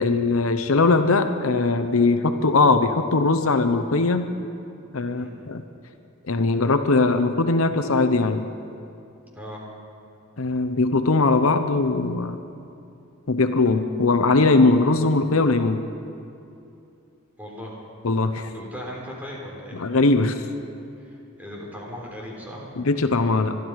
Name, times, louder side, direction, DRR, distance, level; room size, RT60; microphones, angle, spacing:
voice 1, 0.0-4.3 4.9-5.6 6.3-8.4 10.4-12.5 13.3-15.9 18.0-18.5 19.7-20.4 22.8-23.6, left 3 dB, 85° left, 8 dB, 0.9 m, -20 dB
Keyboard (musical), 13.7-15.6, left 4 dB, 15° left, 0.6 m, -37 dB
voice 2, 17.4-17.8 18.5-19.8 21.0-22.7, equal, 10° right, -3 dB, 3.7 m, -38 dB
24.5 x 12.0 x 4.8 m, 2.6 s
head